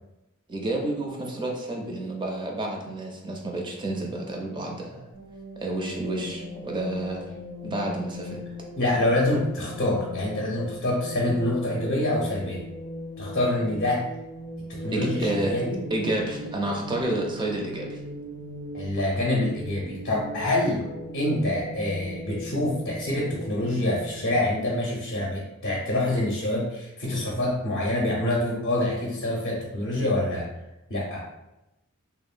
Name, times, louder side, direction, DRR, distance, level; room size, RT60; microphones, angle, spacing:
voice 1, 0.5-5.1 5.6-7.2 7.6-8.4 14.9-15.6 15.9-18.0, right 1 dB, 20° right, 0 dB, 0.4 m, -30 dB
sound 1, 5.1-24.3, left 1 dB, 85° right, 0.9 m, -39 dB
voice 2, 8.8-12.6 13.2-14.0 14.7-15.8 18.7-20.8 21.1-30.5 30.9-31.2, left 1 dB, 50° left, -3 dB, 0.5 m, -26 dB
2.8 x 2.1 x 2.4 m, 0.94 s
head